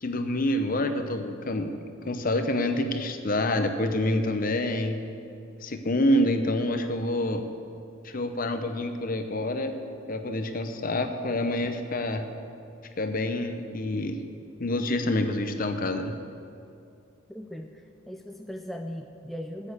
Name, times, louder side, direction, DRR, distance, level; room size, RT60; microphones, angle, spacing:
voice 1, 0.0-1.8 2.0-5.0 5.6-7.4 8.0-9.7 10.1-12.3 13.0-14.2 14.6-16.1, left 1 dB, 40° left, 7 dB, 0.8 m, -27 dB
voice 2, 17.3-19.7, equal, ahead, 3 dB, 0.4 m, -39 dB
9.4 x 8.7 x 8.2 m, 2.6 s
head